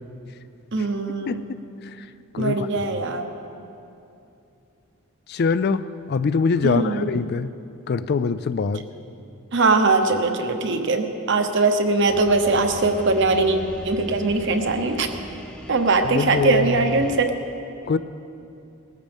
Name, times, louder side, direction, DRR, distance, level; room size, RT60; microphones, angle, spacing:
voice 1, 0.7-1.4 2.4-3.3 6.6-7.1 9.5-13.6 13.8-15.1 15.7-17.3, right 3 dB, 55° right, 5 dB, 1.1 m, -21 dB
voice 2, 1.3-1.6 2.3-3.0 5.3-7.5 7.9-8.8 16.1-17.1 17.9-18.0, left 4 dB, 50° left, 13 dB, 0.4 m, -24 dB
sound 1, 12.1-17.2, left 1 dB, 5° left, 0.9 m, -39 dB
19.0 x 14.5 x 3.6 m, 2.7 s
head